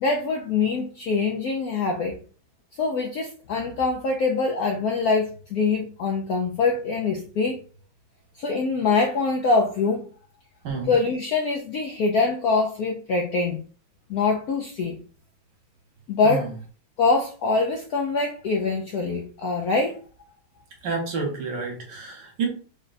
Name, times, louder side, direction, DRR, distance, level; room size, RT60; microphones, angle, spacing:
voice 1, 0.0-2.2 2.8-7.6 8.4-10.1 10.9-13.6 14.1-15.0 16.1-16.5 17.0-20.0, left 4 dB, 75° left, 2 dB, 0.8 m, -24 dB
voice 2, 10.6-10.9 16.2-16.5 20.8-22.5, right 4 dB, 65° right, 1 dB, 1.5 m, -29 dB
3.8 x 2.2 x 4.0 m, 0.40 s
omnidirectional pair, 2.2 m